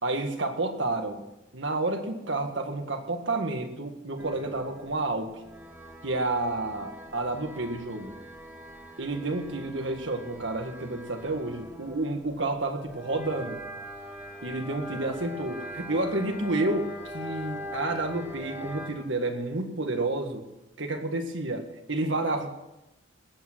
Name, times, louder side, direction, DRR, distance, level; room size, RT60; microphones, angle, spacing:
voice 1, 0.0-1.2 1.5-5.4 6.0-8.1 9.0-13.6 14.4-20.5 20.8-22.5, right 2 dB, 70° right, 5 dB, 1.8 m, -30 dB
sound 1, 4.2-18.9, equal, 10° right, 2.1 m, -42 dB
20.0 x 8.8 x 6.2 m, 0.97 s
head